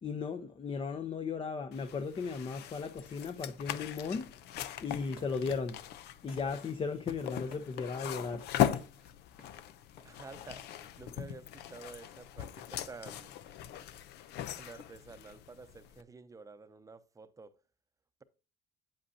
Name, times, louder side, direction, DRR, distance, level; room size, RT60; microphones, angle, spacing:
voice 1, 0.0-4.3 4.8-5.8 6.2-8.5, left 5 dB, 30° left, 0.8 m, -36 dB
sound 1, 1.7-16.0, left 11 dB, 80° left, 0.6 m, -39 dB
sound 2, 5.2-11.1, left 4 dB, 60° left, 2.5 m, -59 dB
voice 2, 10.0-13.3 14.5-17.5, right 4 dB, 20° right, 0.7 m, -50 dB
8.6 x 7.8 x 2.8 m
cardioid pair, 110°, 17 cm